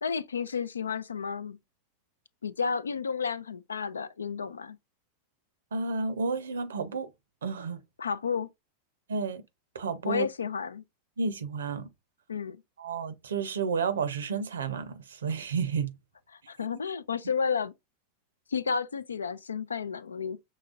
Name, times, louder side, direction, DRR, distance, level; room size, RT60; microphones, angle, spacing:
voice 1, 0.0-1.6 2.4-4.8 8.0-8.5 10.1-10.8 12.3-12.6 16.5-17.7 18.5-20.4, left 6 dB, 90° left, 0.3 m, -31 dB
voice 2, 5.7-7.1 7.4-7.8 9.1-9.4 9.7-10.3 11.2-11.9 12.8-15.9, right 5 dB, 85° right, 0.6 m, -31 dB
5.6 x 3.0 x 2.4 m
hypercardioid pair, 95°, 0 cm